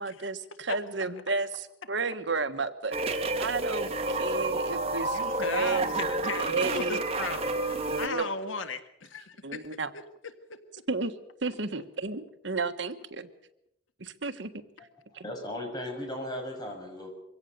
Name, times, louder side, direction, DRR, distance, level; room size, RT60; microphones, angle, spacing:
voice 1, 0.0-5.9 6.3-7.0 7.9-8.3 9.4-9.9 10.9-11.1 11.4-13.3 14.0-14.5 15.1-15.2, right 4 dB, 70° right, 10 dB, 1.4 m, -32 dB
sound 1, 2.9-8.1, right 2 dB, 30° right, 1.8 m, -30 dB
voice 2, 5.1-9.7 9.9-10.0 10.5-10.6, left 4 dB, 90° left, 9 dB, 1.7 m, -37 dB
voice 3, 15.1-17.1, left 1 dB, 20° left, 2 dB, 6.6 m, -36 dB
24.0 x 17.0 x 6.8 m, 0.80 s
head